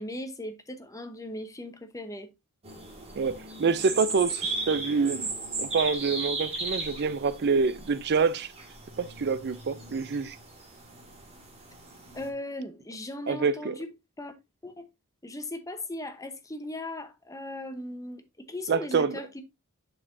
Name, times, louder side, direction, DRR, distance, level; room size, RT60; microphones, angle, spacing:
voice 1, 0.0-2.3 12.1-13.9 14.2-14.3 14.6-14.9 15.2-19.4, left 1 dB, 15° left, 0.9 m, -38 dB
sound 1, 2.6-12.3, right 3 dB, 30° right, 2.0 m, -37 dB
voice 2, 3.2-5.3 5.6-8.5 9.0-10.4 13.3-13.7 18.7-19.2, right 5 dB, 50° right, 0.5 m, -26 dB
7.4 x 6.5 x 2.6 m
head